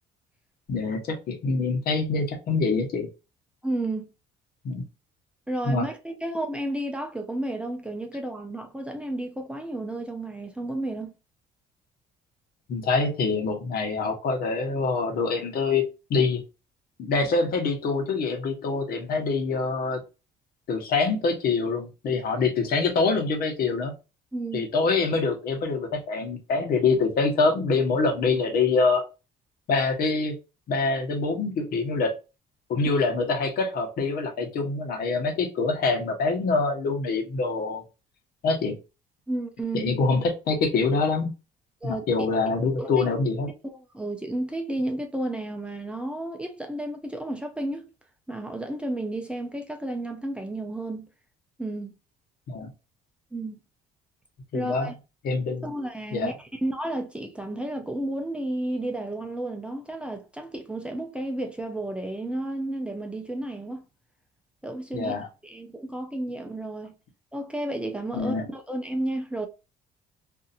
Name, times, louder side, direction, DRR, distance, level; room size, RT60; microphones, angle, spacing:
voice 1, 0.7-3.1 4.6-4.8 5.7-5.9 12.7-15.8 16.1-16.4 17.0-20.0 20.7-23.9 24.5-29.0 29.7-30.3 30.7-32.1 32.7-37.8 38.4-38.8 39.7-41.3 41.8-43.5 52.5-52.7 54.5-54.9 55.2-55.7 56.1-56.3 64.9-65.3 68.1-68.5, left 4 dB, 60° left, 1.1 m, -25 dB
voice 2, 3.6-4.1 5.5-11.1 24.3-24.7 39.3-39.9 41.8-42.1 42.8-43.0 43.6-47.9 48.3-51.1 51.6-51.9 53.3-53.6 54.5-54.9 55.6-63.8 64.6-65.2 65.4-66.9 67.3-69.5, right 1 dB, 5° right, 0.5 m, -32 dB
2.7 x 2.6 x 2.5 m
cardioid pair, 110°, 17 cm